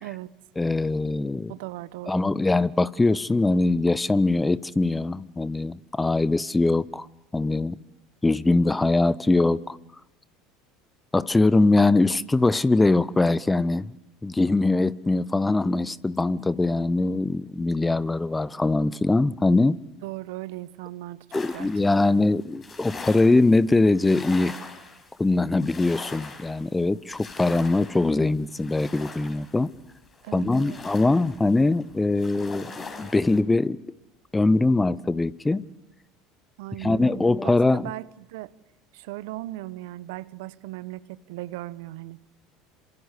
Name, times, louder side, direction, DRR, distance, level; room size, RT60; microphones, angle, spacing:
voice 1, 0.0-0.3 1.5-2.2 20.0-21.7 22.0-22.2 30.2-30.8 36.6-37.4 37.7-38.5 38.9-42.2, right 17 dB, 70° right, 0.9 m, -37 dB
voice 2, 0.6-1.5 2.1-7.1 7.3-7.8 8.2-9.8 11.1-13.9 14.2-19.8 21.3-24.6 25.2-29.7 30.3-32.7 33.0-33.8 34.3-35.6 36.8-37.9, left 2 dB, 15° left, 1.0 m, -22 dB
sound 1, 21.3-33.4, left 4 dB, 30° left, 6.0 m, -42 dB
26.5 x 26.5 x 8.3 m
hypercardioid pair, 75°, 0 cm